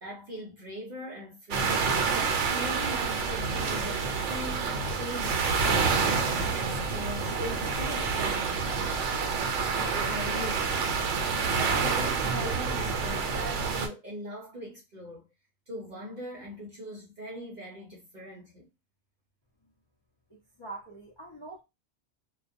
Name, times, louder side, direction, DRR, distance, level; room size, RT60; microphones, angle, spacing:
voice 1, 0.0-1.9 2.4-9.4 9.7-15.3 15.7-18.7, equal, 50° right, 0.6 m, -41 dB
sound 1, 1.5-13.9, right 5 dB, 75° right, 0.9 m, -28 dB
voice 2, 20.3-21.6, right 3 dB, 30° left, 0.5 m, -44 dB
2.3 x 2.2 x 2.5 m
omnidirectional pair, 1.2 m